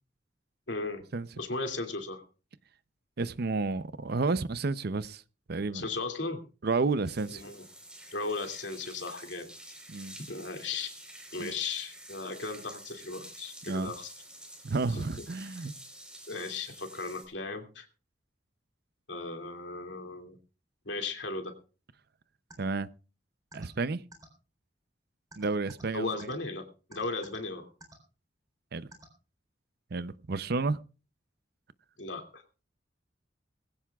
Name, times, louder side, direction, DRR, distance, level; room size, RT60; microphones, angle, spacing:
voice 1, 0.7-1.0 1.4-2.2 5.7-6.4 7.3-7.7 8.1-9.5 10.3-10.9 11.3-14.1 14.9-15.0 16.3-17.9 19.1-20.4 20.8-21.5 25.9-27.7 32.0-32.4, left 3 dB, 75° left, 2.5 m, -36 dB
voice 2, 3.2-5.2 5.5-5.8 6.6-7.4 9.9-10.2 11.4-11.5 13.7-13.9 14.6-15.7 22.6-22.9 23.5-24.0 25.4-26.1 28.7-28.9 29.9-30.8, right 3 dB, 60° right, 0.6 m, -31 dB
sound 1, 7.0-17.2, right 1 dB, 5° right, 4.0 m, -49 dB
sound 2, 22.5-22.6 23.5-23.7 24.1-24.3 25.3-25.8 26.2-26.3 26.9-27.4 27.8-28.0 28.9-29.1, right 2 dB, 20° right, 3.8 m, -49 dB
20.5 x 16.0 x 2.4 m
head